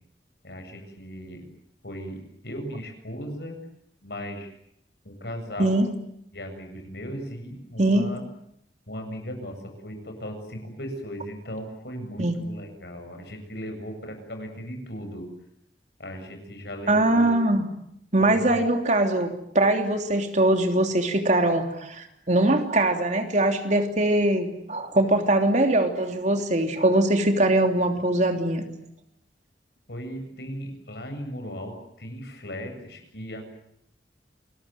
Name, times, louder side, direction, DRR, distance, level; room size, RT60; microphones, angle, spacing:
voice 1, 0.4-1.5 1.8-3.6 4.0-4.5 5.0-5.8 6.3-8.2 8.9-15.3 16.0-17.5 18.2-18.6 29.9-33.5, equal, 65° left, 5 dB, 7.8 m, -37 dB
voice 2, 7.8-8.1 12.2-12.4 16.9-17.7 18.1-19.3 19.5-28.6, right 1 dB, 40° right, 5 dB, 3.2 m, -22 dB
28.5 x 22.0 x 9.2 m, 0.74 s
head